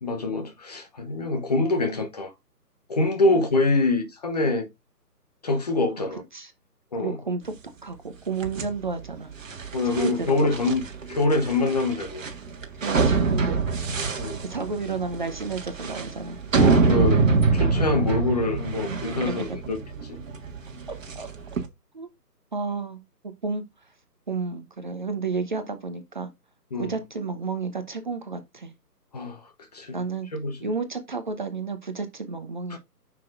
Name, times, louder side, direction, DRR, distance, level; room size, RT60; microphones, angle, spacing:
voice 1, 0.0-2.3 2.9-4.7 5.4-6.2 6.9-7.2 9.7-10.8 11.1-12.2 14.2-14.4 16.6-17.2 17.5-19.8 20.0-20.2 26.7-26.9 29.1-29.5 29.7-30.0 30.3-30.7 32.7-32.8, left 2 dB, 25° left, 0.9 m, -25 dB
voice 2, 7.0-7.5 7.8-9.3 9.8-10.4 10.7-10.8 12.8-13.6 14.0-16.4 18.0-18.2 18.8-19.0 19.3-19.4 21.1-21.3 21.9-22.1 22.5-23.0 23.4-23.6 24.3-26.3 26.8-28.7 29.9-30.3 30.6-32.8, right 4 dB, 30° right, 0.8 m, -31 dB
sound 1, 8.4-21.7, right 4 dB, 50° right, 1.8 m, -25 dB
9.3 x 5.9 x 2.5 m
figure-of-eight pair, 150°, 49 cm